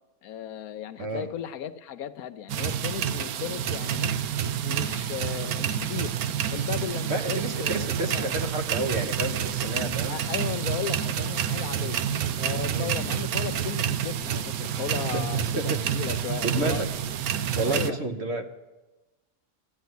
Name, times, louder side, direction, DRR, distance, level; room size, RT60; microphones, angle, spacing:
voice 1, 0.2-4.2 4.6-6.2 6.5-8.3 10.1-12.0 12.4-16.8 17.6-18.0, left 9 dB, 85° left, 10 dB, 1.2 m, -35 dB
voice 2, 1.0-1.3 7.1-10.3 11.7-11.9 12.7-12.9 15.1-15.8 16.4-16.9 17.5-18.5, right 2 dB, 50° right, 6 dB, 1.3 m, -31 dB
sound 1, 2.5-17.9, right 9 dB, 90° right, 1.2 m, -28 dB
13.0 x 10.0 x 9.4 m, 1.1 s
omnidirectional pair, 1.5 m